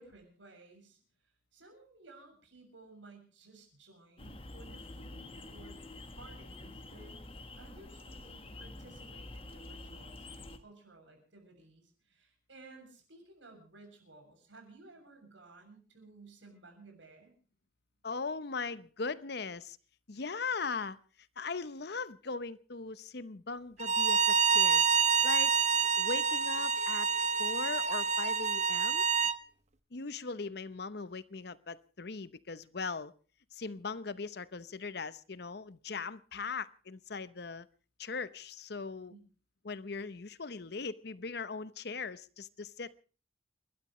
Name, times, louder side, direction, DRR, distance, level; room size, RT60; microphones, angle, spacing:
voice 1, 0.0-7.2 7.6-17.3 39.1-39.3, right 2 dB, 85° right, 7.3 m, -56 dB
sound 1, 4.2-10.6, left 2 dB, 30° left, 1.4 m, -47 dB
voice 2, 18.0-19.8 20.1-21.0 21.4-24.9 25.2-29.3 29.9-33.1 33.5-37.7 38.0-39.1 39.6-43.0, left 4 dB, 60° left, 0.8 m, -39 dB
Bowed string instrument, 23.8-29.4, right 6 dB, 40° right, 0.9 m, -27 dB
30.0 x 12.5 x 3.1 m
head